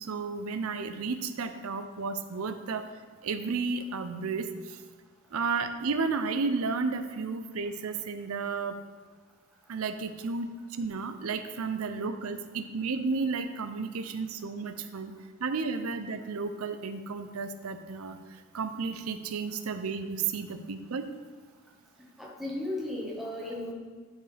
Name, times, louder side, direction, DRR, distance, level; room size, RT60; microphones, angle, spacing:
voice 1, 0.0-2.9 3.2-4.8 5.3-8.8 9.7-15.1 15.4-18.2 18.5-21.1, right 4 dB, 80° right, 9 dB, 0.5 m, -32 dB
voice 2, 22.0-23.7, left 1 dB, ahead, -4 dB, 1.3 m, -35 dB
11.0 x 4.6 x 3.4 m, 1.5 s
head